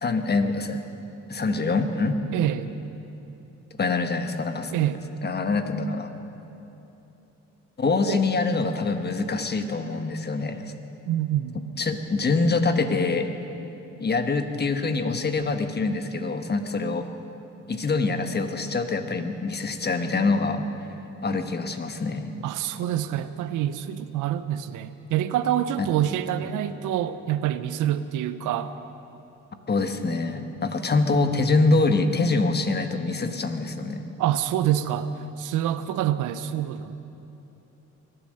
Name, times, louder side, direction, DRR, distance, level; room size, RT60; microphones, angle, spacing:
voice 1, 0.0-0.8 1.3-2.2 3.8-4.7 5.2-6.1 7.8-10.7 11.5-13.3 14.0-17.1 17.7-20.6 21.2-22.3 25.8-25.9 29.7-34.1, left 3 dB, 35° left, 7 dB, 1.2 m, -25 dB
voice 2, 2.3-2.7 4.7-5.0 7.8-8.3 11.1-11.5 22.4-28.7 34.2-35.1 35.4-36.9, right 11 dB, 85° right, 13 dB, 0.7 m, -26 dB
23.5 x 8.9 x 6.5 m, 3.0 s
cardioid pair, 90°, 30 cm